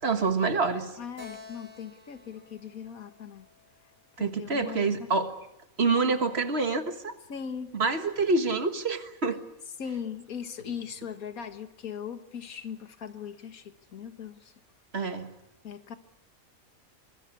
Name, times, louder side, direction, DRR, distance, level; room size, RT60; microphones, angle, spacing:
voice 1, 0.0-0.9 4.2-5.4 5.8-7.2 7.7-9.4 14.9-15.3, right 4 dB, 50° right, 8 dB, 1.7 m, -27 dB
voice 2, 1.0-3.5 4.2-5.1 7.3-7.7 9.8-14.5 15.6-16.0, left 7 dB, 85° left, 9 dB, 1.9 m, -39 dB
Keyboard (musical), 1.2-4.6, left 3 dB, 70° right, 4.9 m, -51 dB
25.0 x 20.5 x 8.3 m, 0.86 s
omnidirectional pair, 1.5 m